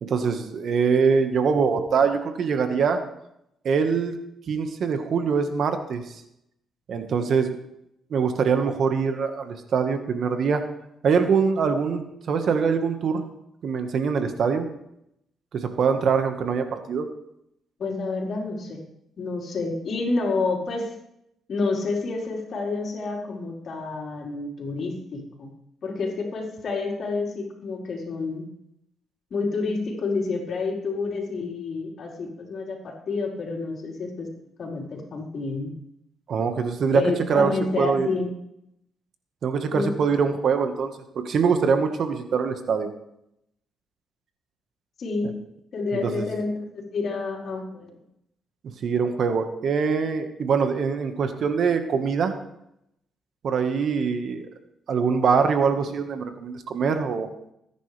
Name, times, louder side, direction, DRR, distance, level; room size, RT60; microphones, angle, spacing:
voice 1, 0.0-3.0 3.6-4.2 4.5-6.2 6.9-7.6 8.1-10.6 11.0-12.0 12.3-13.2 13.6-14.7 15.5-17.0 36.3-37.0 37.3-37.5 37.8-38.1 39.4-42.9 45.2-45.3 45.9-46.3 48.8-52.3 53.4-54.5 54.9-57.3, right 5 dB, 60° right, 7 dB, 1.6 m, -23 dB
voice 2, 17.8-18.8 19.2-20.9 21.5-25.5 25.8-28.5 29.3-34.3 34.6-35.8 36.9-38.3 39.7-39.9 45.0-45.4 45.7-47.9, left 3 dB, 55° left, -1 dB, 4.4 m, -29 dB
20.0 x 10.5 x 3.4 m, 0.79 s
cardioid pair, 90°, 0 cm